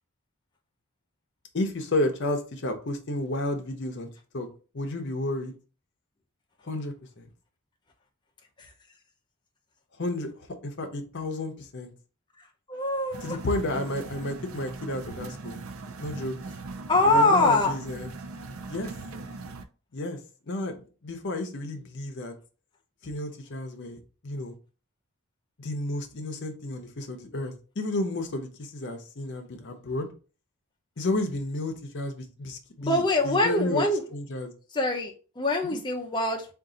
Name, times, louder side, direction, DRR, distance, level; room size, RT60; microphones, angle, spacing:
voice 1, 1.5-4.1 4.3-4.5 4.7-5.5 6.6-7.3 10.0-11.9 13.2-15.6 16.0-16.4 17.0-18.1 18.7-18.9 19.9-20.2 20.5-22.3 23.0-24.6 25.6-30.1 31.0-33.8 34.1-34.5 35.6-35.8, left 1 dB, 55° left, 5 dB, 0.7 m, -32 dB
voice 2, 12.7-13.4 16.9-17.7 32.8-34.0 34.7-36.5, left 2 dB, 20° left, 1 dB, 0.6 m, -23 dB
sound 1, 13.1-19.6, right 3 dB, 70° right, 0.5 m, -40 dB
3.8 x 2.6 x 3.8 m, 0.36 s
head